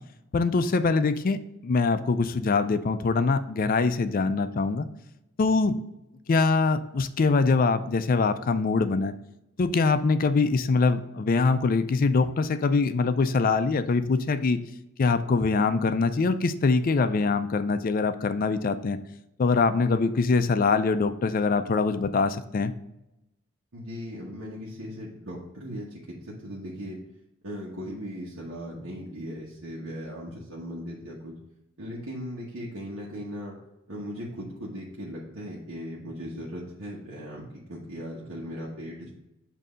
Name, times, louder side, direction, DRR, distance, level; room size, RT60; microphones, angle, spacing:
voice 1, 0.3-4.9 5.4-5.8 6.3-9.1 9.6-14.6 15.0-19.0 19.4-22.7, left 4 dB, 45° left, 11 dB, 0.4 m, -23 dB
voice 2, 23.7-27.0 27.4-31.4 31.8-33.6 33.9-39.1, equal, 80° right, -5 dB, 1.2 m, -38 dB
7.6 x 2.8 x 5.0 m, 0.89 s
head